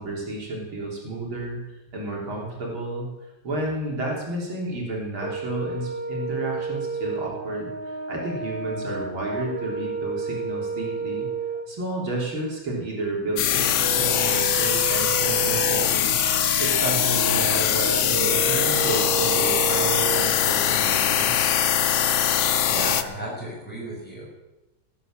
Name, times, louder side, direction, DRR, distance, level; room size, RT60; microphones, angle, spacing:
voice 1, 0.0-1.6 1.9-3.1 3.4-11.3 11.7-16.1 16.6-21.5, right 2 dB, 85° right, -2 dB, 4.2 m, -31 dB
Brass instrument, 5.2-11.7 13.8-20.4, right 5 dB, 45° right, 0.7 m, -31 dB
sound 1, 13.4-23.0, left 10 dB, 75° left, 0.7 m, -22 dB
voice 2, 22.7-24.2, right 1 dB, 5° left, -5 dB, 6.3 m, -33 dB
17.0 x 9.1 x 7.4 m, 1.0 s
omnidirectional pair, 2.2 m